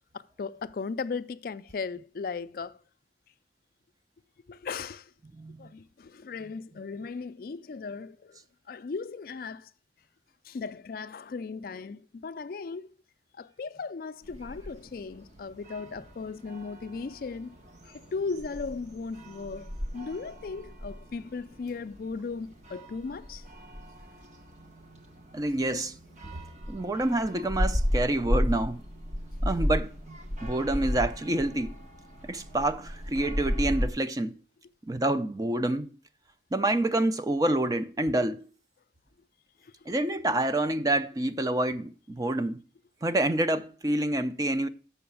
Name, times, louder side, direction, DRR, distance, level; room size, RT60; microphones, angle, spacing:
voice 1, 0.1-2.8 4.5-5.1 5.6-8.4 8.7-9.7 10.4-12.9 13.4-17.6 17.8-23.4 26.4-26.5 39.6-39.7, left 4 dB, 55° left, 0.4 m, -37 dB
voice 2, 5.3-5.7 25.3-26.0 26.2-26.3 26.7-28.8 29.4-31.8 32.2-34.4 34.8-35.9 36.5-38.5 39.9-42.6 43.0-44.7, right 1 dB, 20° right, 0.4 m, -28 dB
sound 1, 14.2-33.9, equal, 40° right, 1.2 m, -35 dB
6.9 x 5.5 x 7.1 m
head